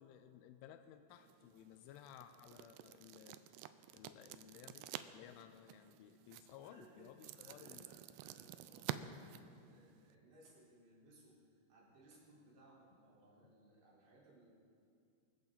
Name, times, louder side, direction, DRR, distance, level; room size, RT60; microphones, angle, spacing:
voice 1, 0.0-3.4 3.9-7.9, left 10 dB, 85° left, 8 dB, 3.1 m, -58 dB
sound 1, 1.1-10.2, right 13 dB, 90° right, 2.4 m, -50 dB
voice 2, 6.5-11.4 11.7-14.5, right 2 dB, 65° right, -6 dB, 6.1 m, -64 dB
24.0 x 14.5 x 4.0 m, 2.4 s
omnidirectional pair, 5.5 m